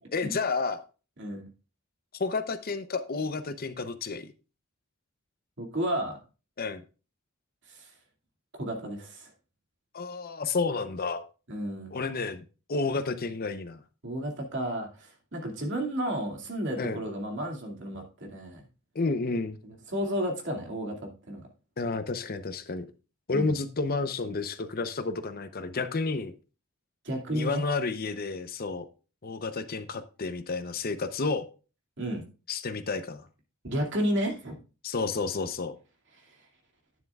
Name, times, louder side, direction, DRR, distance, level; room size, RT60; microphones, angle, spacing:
voice 1, 0.1-0.8 2.1-4.3 6.6-6.8 9.9-11.2 11.9-12.4 12.7-13.8 16.8-17.0 18.9-19.6 21.8-22.9 23.3-26.3 27.3-28.9 29.2-31.5 32.5-33.3 34.8-35.8, left 3 dB, 45° left, 10 dB, 0.7 m, -31 dB
voice 2, 5.6-6.2 7.7-7.9 8.6-9.3 11.5-12.0 14.0-18.6 19.6-21.4 23.3-23.6 27.0-27.6 32.0-32.2 33.6-34.6 36.3-36.4, equal, 60° right, 1 dB, 2.4 m, -32 dB
11.0 x 9.4 x 2.4 m, 0.34 s
head